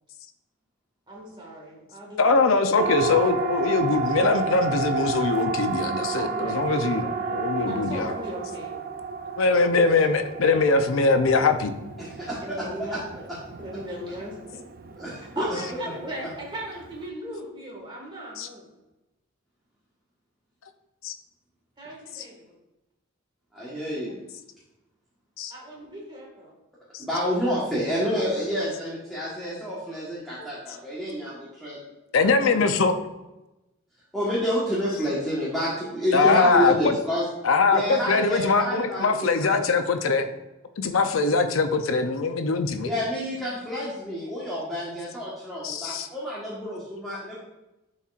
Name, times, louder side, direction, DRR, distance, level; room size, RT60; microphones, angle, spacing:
voice 1, 1.1-2.6 6.1-6.6 7.0-7.1 7.7-8.7 12.4-13.3 13.6-14.6 15.2-18.7 21.8-22.5 25.5-26.5, right 1 dB, 25° right, -3 dB, 1.8 m, -38 dB
voice 2, 2.2-8.1 9.4-11.7 18.4-18.5 21.0-21.1 22.1-22.2 25.4-25.5 26.9-27.0 32.1-33.0 36.1-37.0 37.4-40.3 40.8-42.9 45.6-46.1, left 4 dB, 80° left, 8 dB, 0.6 m, -22 dB
Siren, 2.8-17.1, right 4 dB, 45° right, 0.4 m, -32 dB
voice 3, 12.0-12.7 15.0-15.4 23.5-24.2 27.0-31.8 32.4-32.6 34.1-37.2 37.7-39.5 42.8-47.4, equal, ahead, -9 dB, 1.3 m, -29 dB
10.5 x 4.3 x 2.5 m, 0.98 s
head